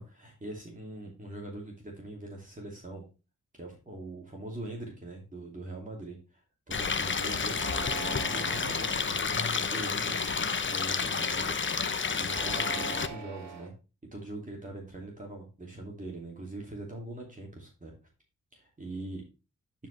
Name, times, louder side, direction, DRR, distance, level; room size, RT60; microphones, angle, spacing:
voice 1, 0.0-3.0 3.5-6.4 6.7-13.7 14.1-17.9 18.5-19.2, right 1 dB, 25° right, -1 dB, 2.7 m, -42 dB
Stream, 6.7-13.1, left 5 dB, 40° left, 0.9 m, -30 dB
sound 1, 7.5-9.0 9.7-10.2 12.2-13.7, right 5 dB, 60° right, 2.4 m, -41 dB
10.0 x 5.1 x 3.3 m, 0.31 s
cardioid pair, 65°, 30 cm